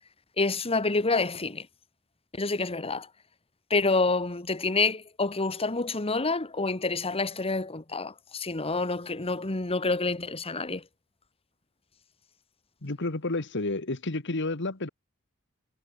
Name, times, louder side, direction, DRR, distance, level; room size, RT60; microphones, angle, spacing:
voice 1, 0.4-1.7 2.3-3.1 3.7-10.8, left 3 dB, 25° left, 1.5 m, -28 dB
voice 2, 12.8-14.9, left 2 dB, 55° left, 1.8 m, -30 dB
head